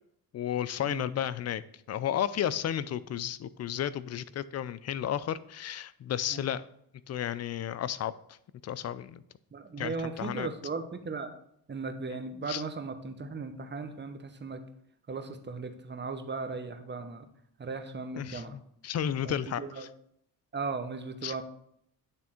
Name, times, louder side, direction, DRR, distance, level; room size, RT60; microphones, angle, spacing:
voice 1, 0.3-1.6 1.9-6.6 7.1-8.4 8.6-9.2 9.8-10.5 12.5-12.6 18.2-19.6 21.2-21.3, left 10 dB, 40° left, 16 dB, 0.4 m, -33 dB
voice 2, 9.5-11.3 11.7-14.6 15.1-17.3 17.6-18.6 19.2-19.9 20.5-21.4, right 4 dB, 25° right, 7 dB, 0.9 m, -37 dB
8.8 x 3.4 x 4.4 m, 0.71 s
cardioid pair, 75°, 42 cm